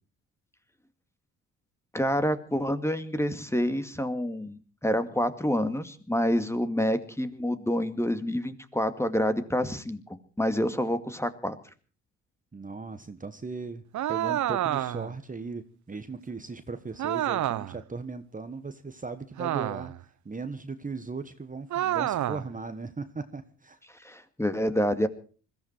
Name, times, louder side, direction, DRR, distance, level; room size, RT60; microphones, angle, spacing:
voice 1, 1.9-11.6 24.0-25.1, equal, 10° left, 2.1 m, -28 dB
voice 2, 12.5-19.9 20.2-23.8, right 4 dB, 25° right, 1.4 m, -38 dB
sound 1, 13.9-15.2 17.0-17.8 19.4-20.0 21.7-22.5, right 12 dB, 60° right, 0.8 m, -29 dB
21.5 x 14.5 x 4.5 m
supercardioid pair, 60°, 33 cm